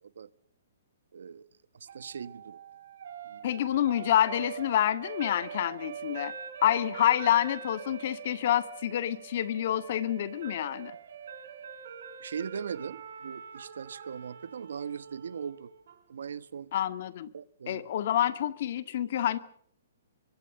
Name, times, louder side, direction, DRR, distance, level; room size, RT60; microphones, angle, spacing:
voice 1, 1.1-1.4 1.7-2.6 3.2-3.5 12.2-15.7 16.1-16.7 17.3-17.8, right 7 dB, 75° right, 1.4 m, -39 dB
sound 1, 1.9-16.0, right 7 dB, 60° right, 4.4 m, -44 dB
voice 2, 3.4-6.3 6.6-10.9 16.7-17.3 17.7-19.4, left 11 dB, 45° left, 1.9 m, -27 dB
25.0 x 23.5 x 6.8 m
hypercardioid pair, 165°, 0 cm